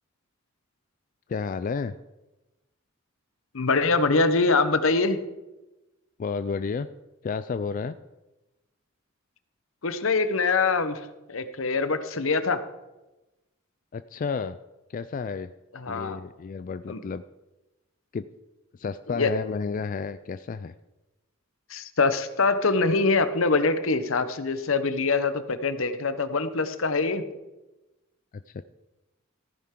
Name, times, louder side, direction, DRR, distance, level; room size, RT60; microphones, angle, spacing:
voice 1, 1.3-2.0 6.2-6.9 7.2-8.0 13.9-14.6 14.9-15.5 15.9-17.2 18.1-18.3 18.7-20.7 28.5-28.6, left 5 dB, 40° left, 12 dB, 0.3 m, -31 dB
voice 2, 3.5-5.2 9.8-11.0 11.3-12.6 15.7-16.2 16.9-17.0 19.1-19.3 21.7-27.2, left 3 dB, 75° left, 11 dB, 0.9 m, -24 dB
15.0 x 10.0 x 3.7 m, 1.0 s
head